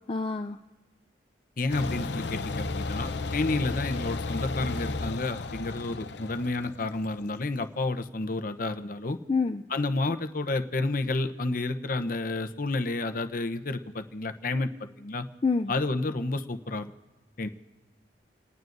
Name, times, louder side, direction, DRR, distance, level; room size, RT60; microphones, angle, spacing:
voice 1, 0.1-0.6 9.3-9.6 15.4-15.7, left 4 dB, 30° left, 6 dB, 0.4 m, -27 dB
voice 2, 1.6-9.2 9.7-15.3 15.7-16.9 17.4-17.5, left 2 dB, 50° left, 9 dB, 0.8 m, -30 dB
sound 1, 1.7-7.4, left 3 dB, 80° left, 0.7 m, -33 dB
29.0 x 18.5 x 2.6 m, 1.2 s
head